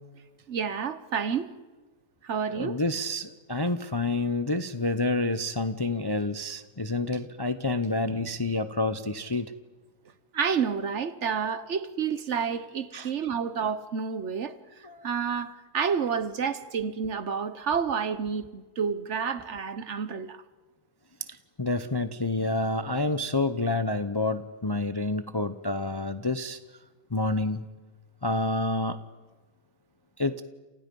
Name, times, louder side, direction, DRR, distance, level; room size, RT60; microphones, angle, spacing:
voice 1, 0.5-1.5 2.2-2.8 10.3-20.4, right 6 dB, 55° right, 1.2 m, -30 dB
voice 2, 2.5-9.5 12.9-13.1 14.8-15.0 21.6-26.6 27.1-27.6 28.2-29.0 30.2-30.4, left 2 dB, 25° left, 0.5 m, -28 dB
29.5 x 28.5 x 5.4 m
omnidirectional pair, 1.6 m